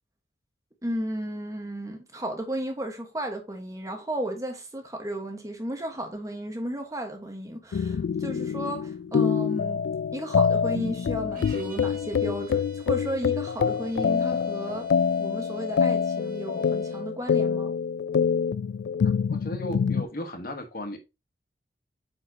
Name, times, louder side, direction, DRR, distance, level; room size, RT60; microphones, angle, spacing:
voice 1, 0.8-9.8 10.1-14.9 15.2-17.7, right 1 dB, 20° right, 1.3 m, -34 dB
sound 1, 7.7-20.0, left 6 dB, 70° left, 0.3 m, -26 dB
sound 2, 11.3-17.1, right 3 dB, 45° right, 1.6 m, -51 dB
voice 2, 19.0-21.0, equal, 50° left, 1.4 m, -36 dB
8.6 x 4.8 x 2.8 m
head